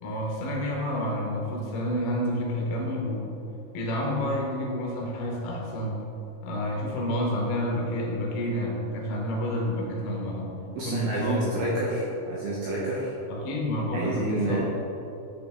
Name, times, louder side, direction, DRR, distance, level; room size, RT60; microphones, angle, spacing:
voice 1, 0.0-3.4 3.7-6.0 6.4-10.5 10.9-11.7 13.3-14.6, left 1 dB, 70° left, -2 dB, 2.6 m, -29 dB
voice 2, 10.7-13.1 13.9-14.6, right 2 dB, 75° right, -6 dB, 2.3 m, -29 dB
9.6 x 5.0 x 3.6 m, 2.9 s
omnidirectional pair, 5.4 m